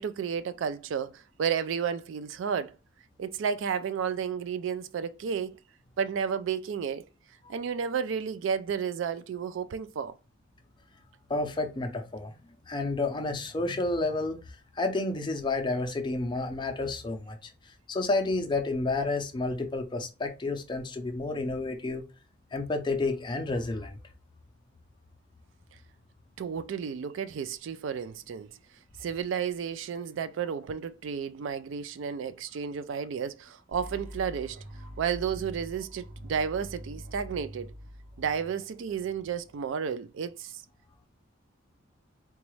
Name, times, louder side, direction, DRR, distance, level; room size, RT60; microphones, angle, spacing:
voice 1, 0.0-2.7 3.2-5.6 6.0-7.0 7.5-10.1 26.4-28.5 29.0-34.6 35.0-37.7 38.2-40.6, right 7 dB, 65° right, 0.3 m, -32 dB
voice 2, 11.3-12.4 12.7-14.4 14.8-17.4 17.9-22.0 22.5-24.0, left 2 dB, 20° left, 0.5 m, -30 dB
sound 1, 33.7-39.7, equal, 45° right, 1.0 m, -45 dB
4.0 x 2.3 x 3.1 m
head